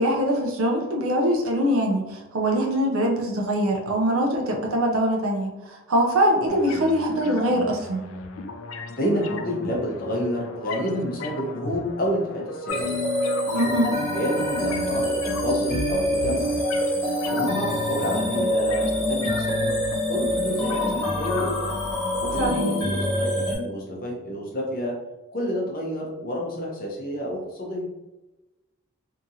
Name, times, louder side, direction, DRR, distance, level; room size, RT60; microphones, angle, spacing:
voice 1, 0.0-8.0 13.5-13.9 22.4-22.7, equal, 75° right, 0 dB, 0.5 m, -23 dB
sound 1, 6.5-22.5, left 3 dB, 70° left, 0.3 m, -36 dB
voice 2, 8.9-12.9 13.8-16.5 17.3-19.7 20.1-21.5 22.2-25.0 25.3-27.9, equal, 40° left, -2 dB, 0.7 m, -29 dB
sound 2, 12.7-23.6, left 1 dB, 15° left, 1.4 m, -26 dB
2.8 x 2.5 x 2.7 m, 1.0 s
head